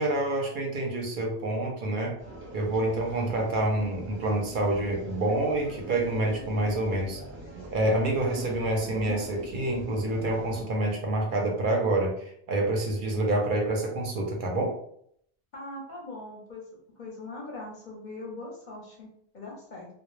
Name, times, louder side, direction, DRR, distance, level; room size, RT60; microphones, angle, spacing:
voice 1, 0.0-2.2 2.5-7.2 7.7-14.7, right 1 dB, 55° right, 0 dB, 0.6 m, -27 dB
sound 1, 2.2-10.6, right 1 dB, 15° right, 0.6 m, -42 dB
voice 2, 15.5-16.6 17.0-19.1 19.3-19.9, left 2 dB, 50° left, -3 dB, 0.7 m, -41 dB
2.1 x 2.0 x 3.0 m, 0.68 s
omnidirectional pair, 1.2 m